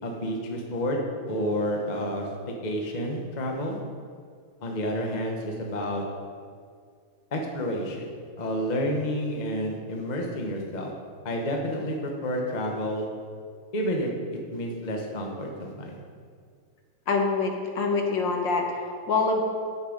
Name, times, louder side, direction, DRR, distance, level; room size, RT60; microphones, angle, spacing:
voice 1, 0.0-1.0 1.3-2.3 2.6-3.8 4.6-6.0 7.3-8.1 8.4-10.9 11.2-13.1 13.7-16.0, equal, 30° left, 0 dB, 0.9 m, -30 dB
voice 2, 17.1-19.4, left 4 dB, 60° left, 2 dB, 1.8 m, -25 dB
9.7 x 8.1 x 5.1 m, 2.1 s
omnidirectional pair, 2.4 m